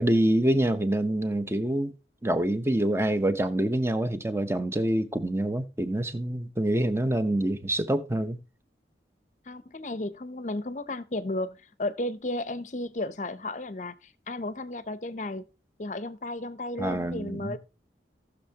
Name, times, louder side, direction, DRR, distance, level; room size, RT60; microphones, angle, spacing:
voice 1, 0.0-1.9 2.2-8.4 16.8-17.6, right 1 dB, 15° right, 0.8 m, -26 dB
voice 2, 9.5-15.5 15.8-17.6, left 2 dB, 40° left, 0.7 m, -34 dB
17.5 x 6.5 x 2.8 m
head